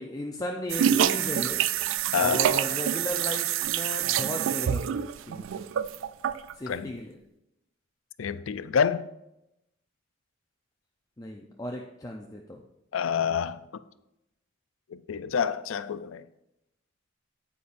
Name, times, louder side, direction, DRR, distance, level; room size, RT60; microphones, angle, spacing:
voice 1, 0.0-1.6 2.2-5.6 6.6-7.2 11.2-12.6, left 1 dB, 20° left, 0.5 m, -36 dB
sound 1, 0.7-6.5, right 10 dB, 70° right, 0.3 m, -26 dB
voice 2, 8.2-9.0 12.9-13.6 15.1-16.2, left 7 dB, 80° left, 0.4 m, -27 dB
9.5 x 8.5 x 2.5 m
head